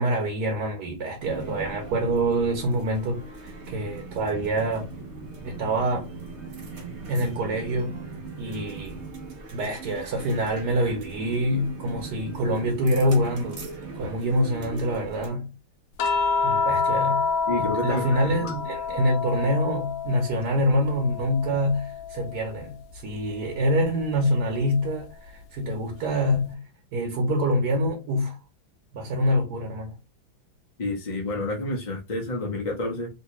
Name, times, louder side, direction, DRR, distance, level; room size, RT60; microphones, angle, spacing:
voice 1, 0.0-4.9 5.4-6.1 7.1-7.9 8.4-9.0 9.5-13.6 14.0-15.5 16.4-26.6 26.9-28.4 28.9-29.9, equal, 65° right, 1.2 m, -26 dB
sound 1, 1.2-15.3, right 3 dB, 50° right, 0.9 m, -39 dB
sound 2, 16.0-20.5 20.8-22.5 24.0-24.2, left 4 dB, 85° left, 1.4 m, -28 dB
voice 2, 17.5-18.5 30.8-33.1, left 1 dB, 55° left, 0.4 m, -29 dB
3.2 x 2.7 x 3.0 m
omnidirectional pair, 2.1 m